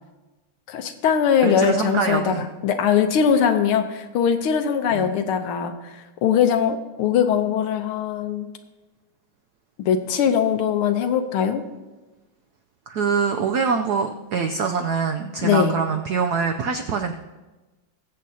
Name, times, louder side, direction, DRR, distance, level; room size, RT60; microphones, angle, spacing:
voice 1, 0.7-8.5 9.8-11.6 15.4-15.7, left 7 dB, 90° left, 7 dB, 1.7 m, -21 dB
voice 2, 1.4-2.4 4.9-5.1 12.9-17.1, right 5 dB, 80° right, 6 dB, 0.8 m, -24 dB
21.0 x 7.6 x 2.8 m, 1.2 s
omnidirectional pair, 2.3 m